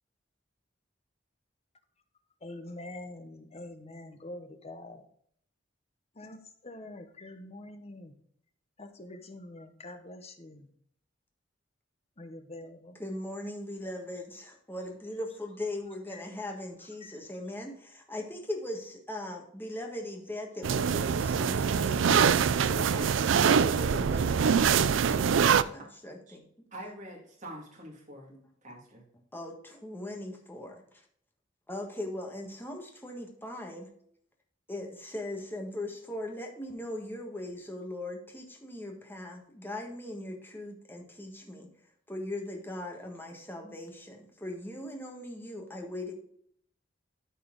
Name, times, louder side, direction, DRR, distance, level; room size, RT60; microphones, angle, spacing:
voice 1, 2.4-5.0 6.2-6.4 6.6-8.1 8.8-10.6 12.2-13.0, left 1 dB, 35° left, 7 dB, 1.0 m, -45 dB
voice 2, 12.9-24.4 25.3-26.4 28.3-28.5 29.3-31.0 31.7-33.9 34.7-41.7 42.1-46.1, left 1 dB, 10° left, 1 dB, 1.5 m, -40 dB
sound 1, 20.6-25.6, right 7 dB, 80° right, 0.4 m, -24 dB
voice 3, 26.7-28.3 28.6-29.0, right 1 dB, 40° right, -2 dB, 2.3 m, -45 dB
12.5 x 4.2 x 3.8 m, 0.65 s
head